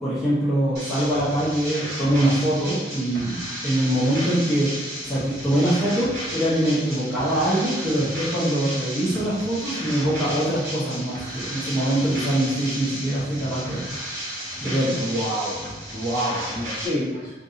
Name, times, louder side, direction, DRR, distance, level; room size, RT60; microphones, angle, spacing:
voice 1, 0.0-3.4 3.6-4.7 5.0-13.8 14.6-15.0, right 1 dB, ahead, -13 dB, 0.9 m, -23 dB
sound 1, 0.7-16.9, equal, 65° right, 1.4 m, -34 dB
voice 2, 14.9-15.5 15.9-17.4, equal, 35° right, -9 dB, 1.2 m, -27 dB
2.7 x 2.6 x 3.7 m, 1.2 s
head